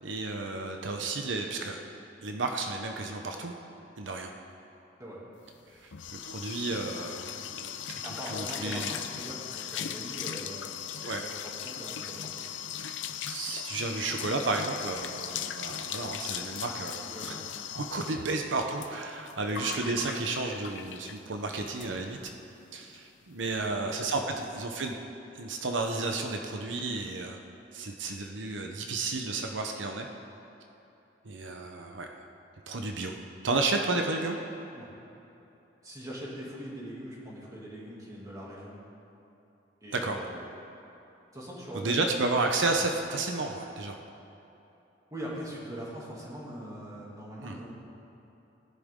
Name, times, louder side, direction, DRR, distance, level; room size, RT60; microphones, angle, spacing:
voice 1, 0.0-1.8 2.2-3.5 4.0-4.3 5.7-8.0 8.3-8.9 11.0-11.2 13.2-17.3 17.7-22.2 22.7-25.0 25.3-27.4 27.7-30.1 31.2-32.1 32.7-33.1 33.4-34.4 40.0-40.2 41.7-44.0 47.4-47.6, right 3 dB, 85° right, 3 dB, 0.9 m, -32 dB
sound 1, 5.5-21.3 21.7-21.9 22.2-22.3 22.6-23.0, left 9 dB, 85° left, 0.6 m, -39 dB
voice 2, 8.0-10.8 11.2-12.5 17.0-17.5 23.5-23.9 24.2-24.3 34.7-34.9 35.8-38.8 39.8-40.4 41.3-42.0 45.1-47.8, equal, 20° right, -5 dB, 2.6 m, -42 dB
19.0 x 10.0 x 3.7 m, 2.9 s
head